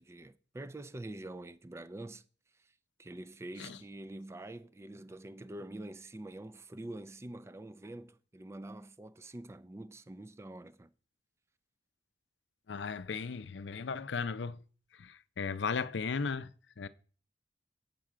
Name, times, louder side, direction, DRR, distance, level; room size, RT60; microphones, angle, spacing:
voice 1, 0.0-2.2 2.5-2.7 3.0-10.9, right 1 dB, 15° right, 0.4 m, -46 dB
voice 2, 12.7-14.6 15.0-16.5 16.8-16.9, left 5 dB, 85° left, 0.5 m, -36 dB
7.5 x 7.5 x 4.9 m
head